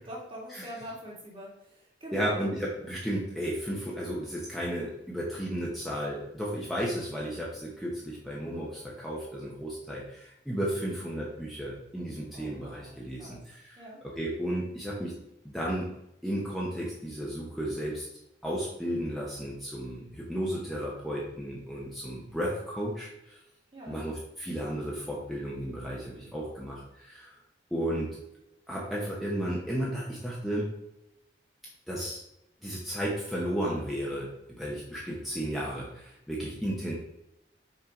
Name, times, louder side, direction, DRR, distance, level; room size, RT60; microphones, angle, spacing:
voice 1, 0.1-2.4 12.3-13.4 13.8-14.0 23.7-24.0, equal, 30° right, -4 dB, 2.1 m, -44 dB
voice 2, 2.1-13.8 14.1-15.1 15.4-15.9 16.2-18.1 18.4-23.4 23.9-27.3 27.7-28.1 28.7-30.7 31.9-32.2 32.6-34.3 34.6-36.9, equal, ahead, -5 dB, 1.0 m, -33 dB
5.8 x 4.4 x 5.2 m, 0.85 s
head